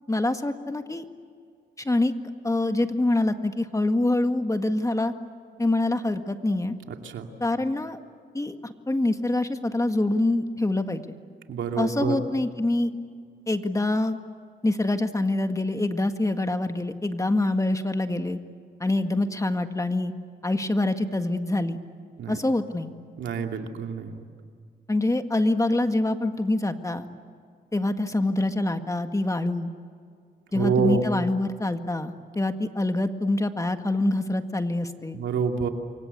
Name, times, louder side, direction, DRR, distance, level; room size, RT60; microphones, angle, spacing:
voice 1, 0.1-1.1 1.8-2.1 2.4-5.1 5.6-6.8 7.4-8.0 8.3-11.1 11.8-13.0 13.5-14.2 14.6-18.4 18.8-20.1 20.4-21.8 22.3-22.9 24.9-27.1 27.7-29.7 30.5-35.2, left 2 dB, 15° left, 7 dB, 1.8 m, -25 dB
voice 2, 6.9-7.3 11.5-12.2 22.2-22.4 23.2-24.2 30.5-31.0 35.1-35.7, right 6 dB, 90° right, 4 dB, 2.6 m, -27 dB
28.5 x 24.0 x 8.4 m, 2.1 s
cardioid pair, 80°, 19 cm